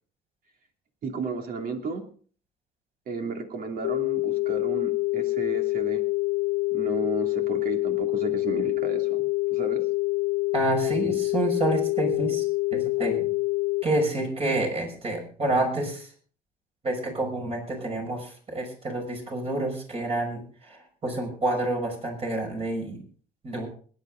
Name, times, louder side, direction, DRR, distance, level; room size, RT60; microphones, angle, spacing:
voice 1, 1.0-2.0 3.1-6.0 6.7-9.2 9.5-9.8, right 4 dB, 60° right, 4 dB, 2.8 m, -33 dB
sound 1, 3.8-13.8, left 21 dB, 85° left, 0.6 m, -26 dB
voice 2, 10.5-12.4 12.7-13.3 13.8-16.1 16.8-20.4 20.7-23.0 23.4-23.7, right 2 dB, 35° right, 2 dB, 6.1 m, -28 dB
21.0 x 10.5 x 3.8 m, 0.43 s
cardioid pair, 110°, 17 cm